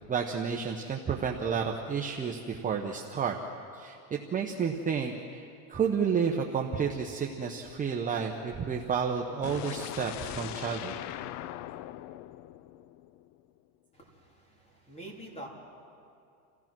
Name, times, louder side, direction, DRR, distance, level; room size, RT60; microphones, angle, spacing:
voice 1, 0.1-3.4 3.7-10.9, right 6 dB, 20° right, 1 dB, 0.9 m, -31 dB
sound 1, 9.4-13.4, left 14 dB, 40° left, 0.5 m, -40 dB
voice 2, 13.9-15.5, right 1 dB, 15° left, -1 dB, 3.5 m, -46 dB
28.0 x 16.0 x 6.1 m, 2.5 s
supercardioid pair, 140°, 43 cm